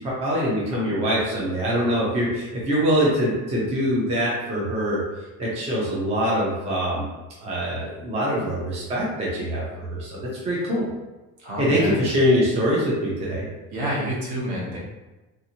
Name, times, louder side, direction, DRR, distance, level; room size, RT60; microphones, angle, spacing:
voice 1, 0.0-5.0 5.4-7.1 7.4-9.6 9.9-10.8 11.6-13.5, equal, 20° right, -5 dB, 0.5 m, -23 dB
voice 2, 11.4-12.0 13.7-14.8, equal, 65° right, -5 dB, 1.1 m, -28 dB
2.8 x 2.5 x 2.8 m, 1.1 s
cardioid pair, 180°, 32 cm